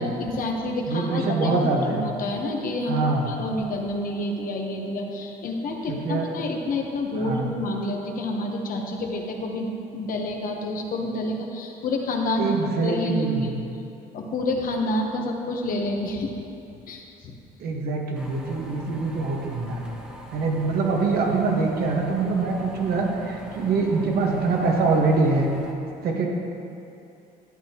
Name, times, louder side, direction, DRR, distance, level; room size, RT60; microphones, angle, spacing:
voice 1, 0.0-1.6 1.9-12.5 12.8-13.6 14.1-16.3 16.9-17.3, left 1 dB, 55° left, 1 dB, 1.1 m, -28 dB
voice 2, 0.9-2.1 2.9-3.3 5.9-6.3 7.1-7.5 12.4-13.6 17.6-19.8 20.3-25.5 26.0-26.3, right 3 dB, 65° right, 0 dB, 1.4 m, -24 dB
sound 1, 18.1-25.7, equal, 5° right, 1.1 m, -41 dB
11.5 x 8.1 x 3.0 m, 2.7 s
cardioid pair, 110°, 17 cm